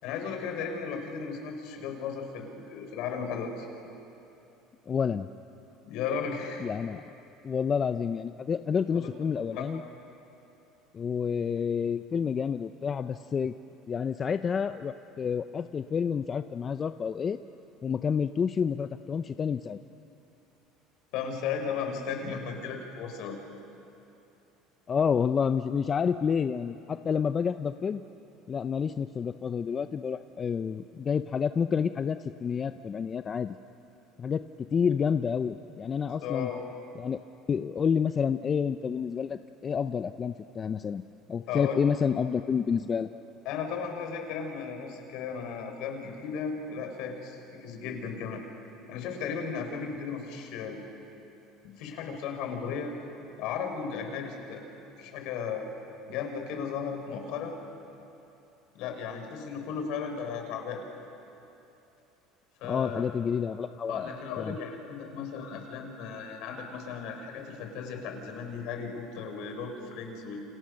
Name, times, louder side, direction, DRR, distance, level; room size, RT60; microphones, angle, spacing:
voice 1, 0.0-3.7 5.8-6.6 8.9-9.1 9.5-9.6 21.1-23.4 36.2-36.6 41.5-41.9 43.4-48.4 48.9-50.8 51.6-52.9 53.4-54.6 55.0-55.7 56.1-57.5 58.7-60.8 62.6-63.0 63.9-70.4, left 6 dB, 70° left, 4 dB, 4.8 m, -35 dB
voice 2, 4.9-5.3 6.6-7.0 7.4-9.8 10.9-13.6 13.9-17.4 17.8-19.8 24.9-28.0 28.5-33.6 34.2-36.5 37.0-37.2 37.5-41.0 41.3-43.1 62.6-64.1 64.4-64.6, left 6 dB, 30° left, 10 dB, 0.6 m, -29 dB
29.0 x 27.5 x 6.5 m, 2.9 s
supercardioid pair, 115°, 0 cm